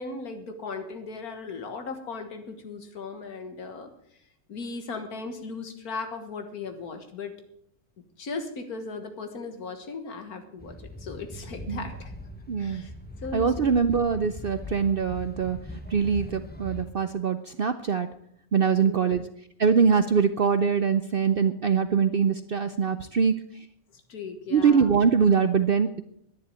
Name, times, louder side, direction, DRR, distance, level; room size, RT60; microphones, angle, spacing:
voice 1, 0.0-3.9 4.5-7.3 8.2-12.1 12.6-12.9 13.2-13.7 24.1-24.9, left 4 dB, 85° left, 7 dB, 2.0 m, -37 dB
sound 1, 10.6-16.9, left 1 dB, 5° left, 1.0 m, -40 dB
voice 2, 12.5-12.8 13.3-15.6 15.9-18.1 18.5-19.2 19.6-23.7 24.5-26.0, right 6 dB, 55° right, 11 dB, 0.6 m, -23 dB
11.0 x 10.5 x 8.2 m, 0.72 s
omnidirectional pair, 1.5 m